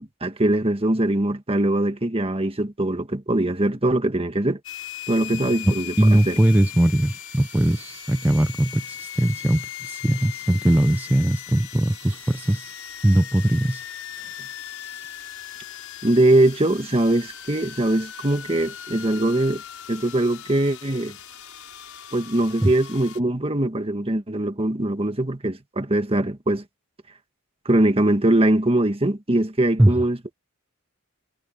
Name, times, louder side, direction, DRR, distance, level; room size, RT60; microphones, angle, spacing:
voice 1, 0.0-4.6 5.1-6.4 16.0-19.6 19.9-21.2 22.1-26.6 27.7-30.3, right 1 dB, 25° right, 1.7 m, -22 dB
sound 1, 4.6-23.2, left 10 dB, 80° left, 6.5 m, -38 dB
voice 2, 5.6-12.7 13.0-13.8 29.8-29.9, right 1 dB, 10° right, 0.5 m, -20 dB
head